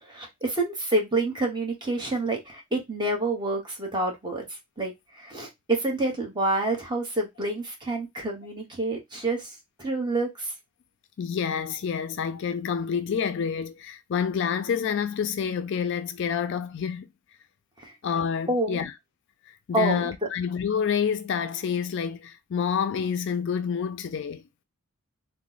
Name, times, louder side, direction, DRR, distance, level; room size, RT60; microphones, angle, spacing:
voice 1, 0.0-10.5 17.8-17.9 18.5-18.8 19.7-20.1, right 2 dB, 20° right, 0.9 m, -28 dB
voice 2, 11.2-17.1 18.0-18.9 19.5-24.4, left 7 dB, 55° left, 0.3 m, -28 dB
2.9 x 2.0 x 3.9 m
head